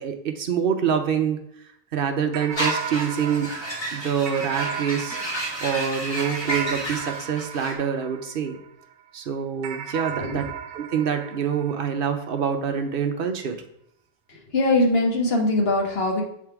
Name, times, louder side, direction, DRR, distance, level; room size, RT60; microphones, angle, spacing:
voice 1, 0.0-1.4 1.9-3.5 3.9-5.2 5.6-8.6 9.1-10.4 10.7-13.6, right 7 dB, 50° right, 6 dB, 0.7 m, -26 dB
sound 1, 2.3-8.9 9.6-12.4, right 9 dB, 85° right, 1.0 m, -36 dB
sound 2, 2.5-7.7, right 1 dB, 20° left, 1.3 m, -31 dB
voice 2, 14.3-16.2, left 2 dB, 50° left, 0 dB, 1.4 m, -22 dB
7.3 x 3.6 x 4.5 m, 0.73 s
omnidirectional pair, 1.4 m